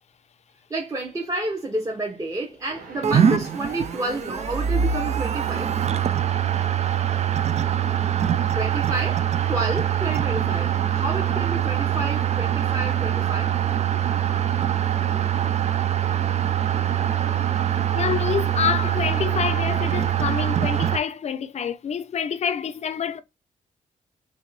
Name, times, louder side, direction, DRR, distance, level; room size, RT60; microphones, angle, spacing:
voice 1, 0.7-5.7 8.5-13.5, right 2 dB, 25° right, 0.9 m, -30 dB
sound 1, 2.7-21.0, right 3 dB, 80° right, 1.7 m, -42 dB
sound 2, 3.0-21.0, right 10 dB, 50° right, 0.4 m, -23 dB
voice 2, 17.9-23.2, left 7 dB, 50° left, 0.5 m, -27 dB
3.0 x 2.8 x 3.9 m
cardioid pair, 80°, 14 cm